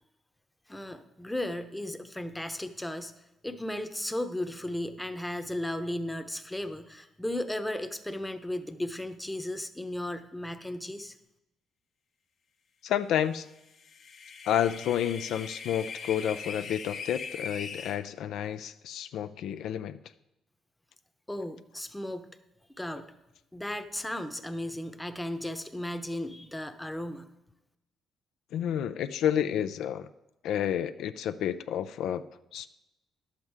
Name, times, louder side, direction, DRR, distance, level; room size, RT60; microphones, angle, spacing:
voice 1, 0.7-3.1 3.4-11.2 21.3-22.3 22.8-23.1 23.5-27.3, left 1 dB, 5° left, 8 dB, 0.8 m, -35 dB
voice 2, 12.8-13.5 14.5-20.0 28.5-30.1 30.4-32.2 32.5-32.7, left 10 dB, 80° left, 11 dB, 0.3 m, -30 dB
sound 1, 13.7-18.0, left 5 dB, 60° left, 1.0 m, -40 dB
11.0 x 7.3 x 4.7 m, 0.92 s
cardioid pair, 85°, 0 cm